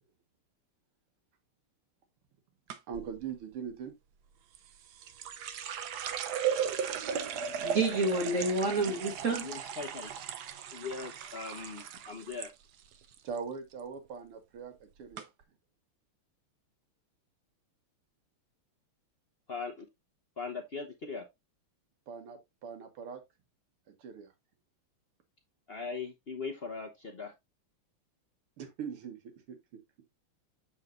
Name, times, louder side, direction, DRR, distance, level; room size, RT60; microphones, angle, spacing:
sound 1, 2.7-3.1 4.5-12.5 12.8-13.4 13.7-14.1 14.7-14.8 15.1-15.2, right 8 dB, 65° right, 1.0 m, -36 dB
voice 1, 2.9-3.9 13.2-15.3 22.1-23.2 24.0-24.3 28.6-29.2 29.5-29.8, right 6 dB, 80° right, 2.3 m, -41 dB
voice 2, 7.1-9.5, right 2 dB, 40° right, 1.6 m, -30 dB
voice 3, 9.4-10.2 10.7-12.5 19.5-19.8 20.4-21.2 25.7-27.3, left 4 dB, 50° left, 0.7 m, -40 dB
7.2 x 6.5 x 2.5 m
omnidirectional pair, 2.4 m